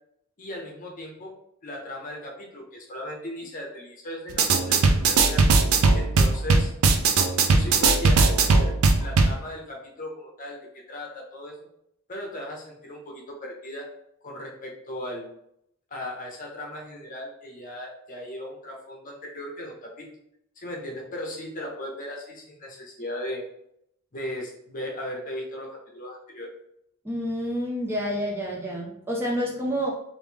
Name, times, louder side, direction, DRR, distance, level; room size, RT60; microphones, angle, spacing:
voice 1, 0.4-1.3 1.6-5.5 5.9-6.7 7.5-8.7 9.0-11.5 12.1-13.9 14.2-15.3 15.9-20.1 20.6-23.4 24.1-26.5, left 1 dB, 40° left, -1 dB, 0.7 m, -37 dB
sound 1, 4.3-9.4, right 3 dB, 80° right, 0.4 m, -19 dB
voice 2, 27.0-29.9, equal, 10° right, -2 dB, 0.4 m, -28 dB
3.1 x 2.6 x 3.4 m, 0.76 s
head